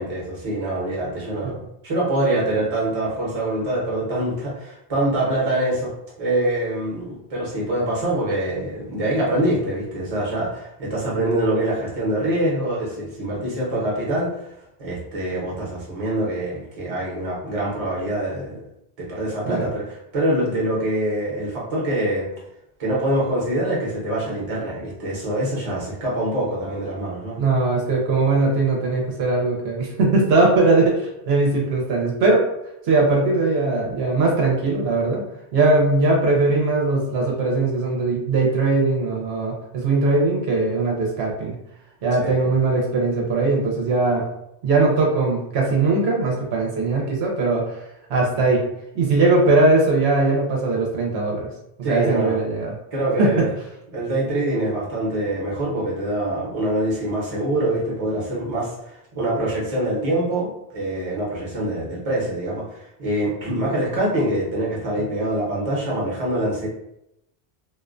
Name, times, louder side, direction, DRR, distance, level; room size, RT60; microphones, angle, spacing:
voice 1, 0.0-5.9 6.2-14.5 14.8-18.6 19.0-22.3 22.8-27.4 42.2-42.5 51.8-52.4 52.9-53.5 53.9-66.7, right 1 dB, 40° right, -5 dB, 0.8 m, -24 dB
voice 2, 27.4-32.4 32.9-35.2 35.5-41.6 42.0-44.2 44.6-47.6 48.1-48.6 49.0-51.5 51.9-52.7 53.2-53.3, right 3 dB, 80° right, -1 dB, 0.8 m, -20 dB
2.4 x 2.1 x 2.4 m, 0.82 s
omnidirectional pair, 1.0 m